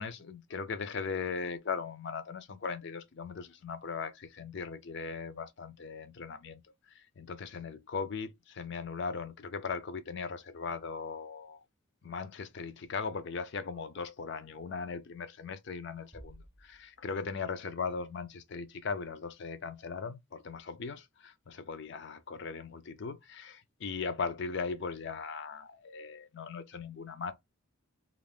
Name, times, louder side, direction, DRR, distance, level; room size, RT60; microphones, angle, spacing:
voice 1, 0.0-11.6 12.0-27.3, left 5 dB, 55° left, 0.4 m, -39 dB
Bass drum, 16.1-17.5, right 1 dB, 5° right, 0.3 m, -55 dB
2.5 x 2.4 x 3.4 m
head